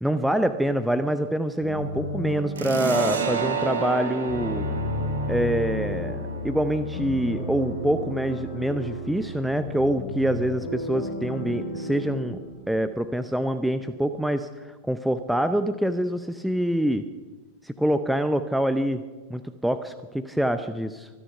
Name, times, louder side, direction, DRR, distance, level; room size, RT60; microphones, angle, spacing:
voice 1, 0.0-4.7 5.3-12.4 12.7-17.1 17.6-19.0 19.3-21.1, right 1 dB, ahead, 10 dB, 0.7 m, -25 dB
sound 1, 1.6-13.3, equal, 45° left, 5.9 m, -33 dB
sound 2, 2.5-9.7, right 5 dB, 65° right, 2.1 m, -33 dB
24.0 x 10.0 x 5.6 m, 1.3 s
figure-of-eight pair, 90°, 0 cm